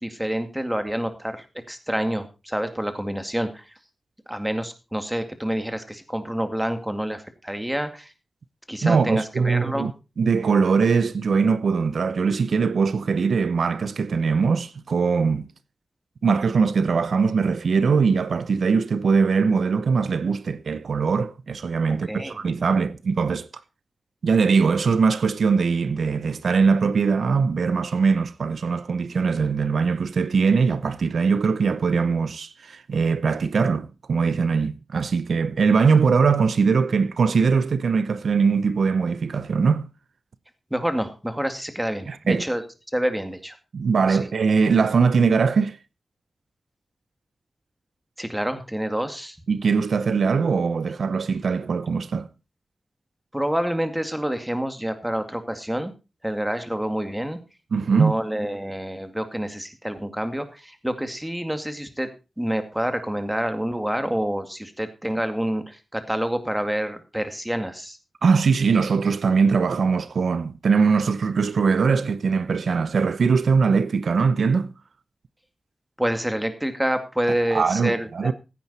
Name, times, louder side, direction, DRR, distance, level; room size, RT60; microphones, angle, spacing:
voice 1, 0.0-3.7 4.3-8.1 8.7-9.9 22.1-22.4 40.7-42.6 42.9-43.6 44.1-44.2 48.2-49.4 53.3-55.9 56.2-57.4 57.9-62.1 62.4-68.0 76.0-78.3, equal, 10° right, 2.2 m, -27 dB
voice 2, 8.8-9.9 10.2-15.5 16.2-23.5 24.2-39.9 42.1-42.4 43.7-45.8 49.5-52.3 57.7-58.2 68.2-74.7 77.5-78.3, right 5 dB, 85° right, 0.7 m, -21 dB
15.5 x 9.1 x 4.2 m
wide cardioid pair, 80°, 0 cm